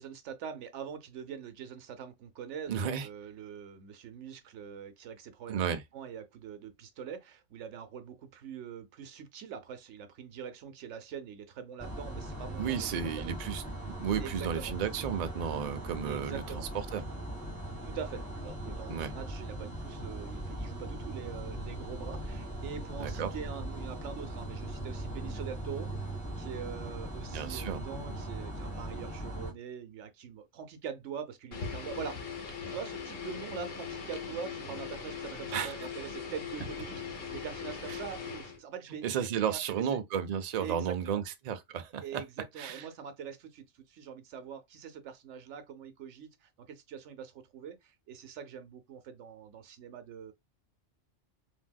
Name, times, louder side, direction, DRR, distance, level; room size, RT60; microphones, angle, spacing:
voice 1, 0.0-5.6 5.9-13.4 14.2-14.7 16.0-16.7 17.8-32.4 32.7-39.8 40.6-41.2 42.0-50.3, right 7 dB, 75° right, 1.0 m, -43 dB
voice 2, 2.7-3.1 5.5-5.8 12.6-17.0 18.9-19.1 23.0-23.3 27.3-27.8 35.5-35.7 37.9-38.0 39.0-42.2 42.6-42.9, right 8 dB, 55° right, 0.4 m, -33 dB
sound 1, 11.8-29.5, right 1 dB, 5° left, 1.3 m, -39 dB
sound 2, 31.5-38.6, left 6 dB, 55° left, 1.1 m, -40 dB
3.4 x 2.7 x 2.2 m
omnidirectional pair, 1.2 m